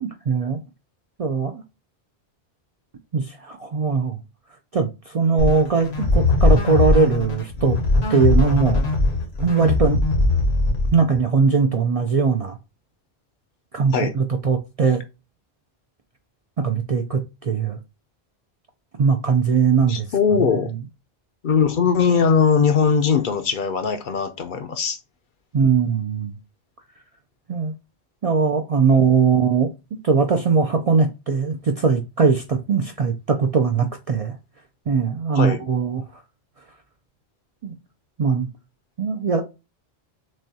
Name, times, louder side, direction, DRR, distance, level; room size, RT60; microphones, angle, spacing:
voice 1, 0.0-0.6 1.2-1.6 3.1-4.2 4.7-7.8 8.1-8.8 9.4-10.0 10.9-12.6 13.7-15.0 16.6-17.8 19.0-20.1 25.5-26.3 27.5-27.7 28.2-29.7 30.0-34.4 34.9-36.0 37.6-37.7 38.2-38.5 39.0-39.4, right 5 dB, 50° right, 0.4 m, -20 dB
sound 1, 5.4-11.2, left 2 dB, 80° left, 1.3 m, -20 dB
voice 2, 19.9-20.7 21.4-25.0 35.3-35.6, left 6 dB, 60° left, 0.7 m, -20 dB
6.2 x 2.3 x 2.7 m
omnidirectional pair, 1.1 m